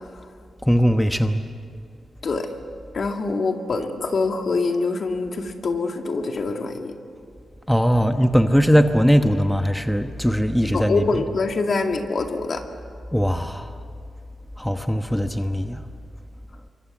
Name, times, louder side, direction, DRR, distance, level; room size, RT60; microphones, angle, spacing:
voice 1, 0.6-1.4 7.7-11.2 13.1-13.7 14.6-15.8, equal, ahead, 6 dB, 1.1 m, -20 dB
voice 2, 2.9-6.9 10.6-12.6, left 3 dB, 55° left, 4 dB, 2.3 m, -25 dB
27.0 x 23.5 x 7.3 m, 2.3 s
cardioid pair, 90°, 0 cm